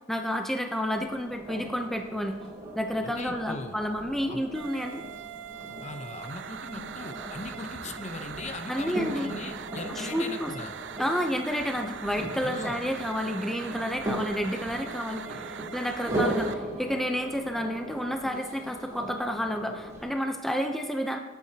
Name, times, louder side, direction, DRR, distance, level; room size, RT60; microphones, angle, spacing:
voice 1, 0.0-2.4 2.7-5.0 8.7-9.3 9.9-10.5 11.0-21.2, equal, ahead, 4 dB, 0.7 m, -30 dB
sound 1, 0.9-20.1, right 1 dB, 20° right, 3.4 m, -38 dB
voice 2, 3.0-3.8 4.3-4.4 5.8-10.7 12.4-12.8, left 2 dB, 40° left, 6 dB, 0.8 m, -39 dB
sound 2, 4.5-16.5, right 8 dB, 75° right, 0.4 m, -41 dB
17.0 x 8.2 x 2.9 m, 1.2 s
head